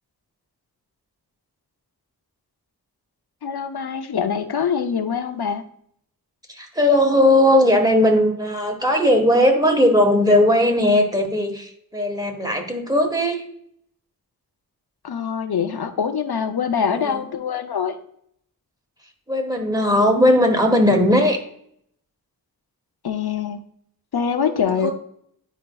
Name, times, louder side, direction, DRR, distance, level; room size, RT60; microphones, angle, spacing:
voice 1, 3.4-5.6 15.0-18.0 23.0-23.6 24.1-24.9, left 7 dB, 85° left, 8 dB, 0.6 m, -24 dB
voice 2, 6.5-13.4 16.9-17.3 19.3-21.4 24.3-24.9, left 1 dB, 10° right, 2 dB, 1.3 m, -18 dB
9.8 x 5.1 x 2.3 m, 0.69 s
wide cardioid pair, 60°, 37 cm